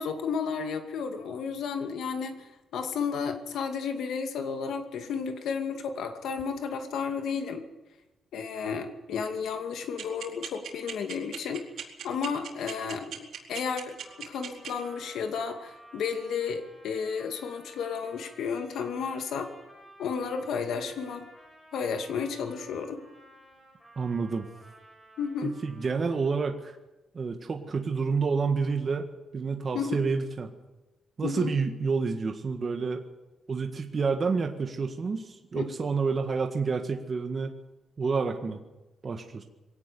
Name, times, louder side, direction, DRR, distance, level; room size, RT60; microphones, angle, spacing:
voice 1, 0.0-2.5 2.7-7.7 8.3-11.6 12.0-19.5 20.0-21.3 21.7-23.0 25.2-25.6 29.7-30.1 31.2-31.6 35.6-35.7, left 6 dB, 85° left, 5 dB, 2.4 m, -32 dB
sound 1, 10.0-14.7, right 9 dB, 75° right, 4.5 m, -37 dB
Trumpet, 14.0-26.4, right 1 dB, 5° left, 6.1 m, -54 dB
voice 2, 23.9-24.5 25.4-26.8 27.1-29.1 29.3-30.5 31.2-33.0 33.5-37.5 38.0-38.6 39.0-39.4, right 4 dB, 35° right, 4 dB, 1.7 m, -29 dB
23.0 x 18.0 x 7.0 m, 1.0 s
wide cardioid pair, 150°, 0 cm